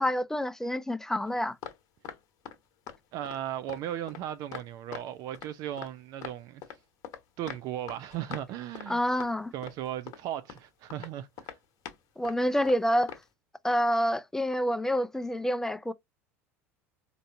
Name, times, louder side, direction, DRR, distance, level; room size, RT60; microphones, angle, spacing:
voice 1, 0.0-1.6 8.9-9.5 12.2-13.1 13.6-15.9, equal, 5° left, 0.4 m, -27 dB
sound 1, 1.2-1.8 2.0-2.6 2.9-3.0 3.2-3.4 3.7-5.1 5.3-5.9 6.2-7.2 7.5-8.5 8.7-8.9 9.2-9.3 9.6-10.2 10.5-10.6 10.9-11.1 11.4-12.0 12.2-12.4 12.6-12.8 13.1-13.2, left 9 dB, 55° left, 1.0 m, -42 dB
voice 2, 3.1-6.6 7.4-9.0 9.5-11.6, right 11 dB, 55° right, 0.4 m, -36 dB
4.4 x 2.6 x 2.5 m
hypercardioid pair, 70°, 8 cm